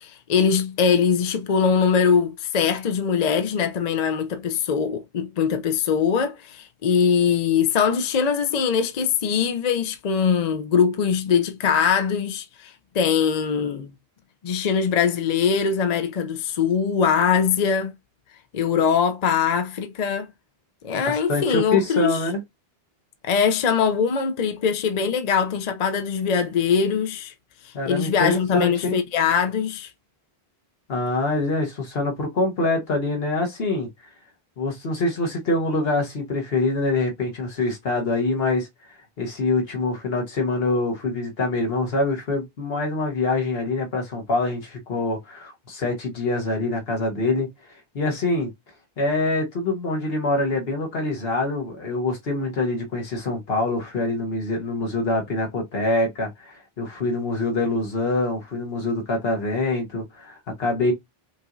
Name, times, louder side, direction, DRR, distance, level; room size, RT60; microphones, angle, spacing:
voice 1, 0.0-13.9 14.4-17.9 18.5-20.3 20.8-22.1 23.2-27.3 27.6-29.9, left 6 dB, 50° left, 0.6 m, -22 dB
voice 2, 20.9-22.4 27.7-29.0 30.9-33.9 34.6-48.5 49.0-60.9, left 2 dB, 65° left, 1.3 m, -25 dB
5.4 x 2.9 x 2.6 m
omnidirectional pair, 1.1 m